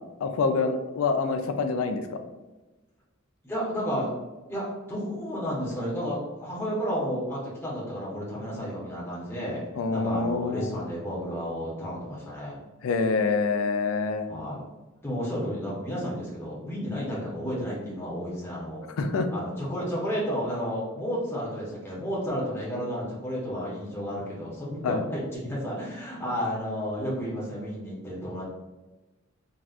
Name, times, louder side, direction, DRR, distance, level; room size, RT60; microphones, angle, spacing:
voice 1, 0.2-2.2 9.8-10.7 12.8-14.3 19.0-19.3 24.8-25.0, left 4 dB, 90° left, 8 dB, 0.4 m, -26 dB
voice 2, 3.4-4.1 4.5-9.6 9.9-12.6 14.3-14.6 15.0-18.8 19.3-28.4, equal, 10° left, -7 dB, 0.9 m, -32 dB
4.0 x 2.3 x 2.4 m, 1.1 s
head